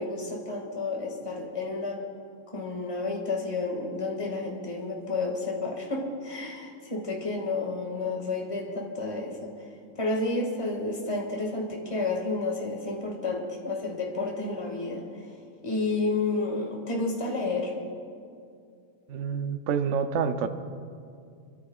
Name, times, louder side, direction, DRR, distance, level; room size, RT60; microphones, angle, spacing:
voice 1, 0.0-2.1 2.5-9.5 10.0-15.1 15.6-17.7, left 3 dB, 15° left, -1 dB, 1.8 m, -31 dB
voice 2, 19.1-20.5, right 6 dB, 85° right, 8 dB, 0.6 m, -27 dB
27.0 x 13.5 x 2.4 m, 2.4 s
omnidirectional pair, 2.2 m